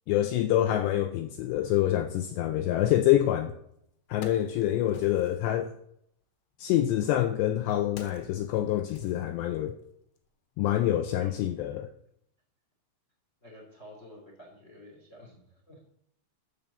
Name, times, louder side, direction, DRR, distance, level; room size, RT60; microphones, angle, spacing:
voice 1, 0.1-3.5 4.1-5.7 6.6-9.7 10.6-11.9, left 12 dB, 85° left, 2.5 m, -26 dB
Wood, 3.4-3.5 3.9-5.5 6.5-9.8 10.2-10.3, left 5 dB, 65° left, 3.1 m, -49 dB
voice 2, 13.4-15.8, left 1 dB, 20° left, 2.2 m, -50 dB
14.0 x 5.7 x 7.0 m
omnidirectional pair, 5.7 m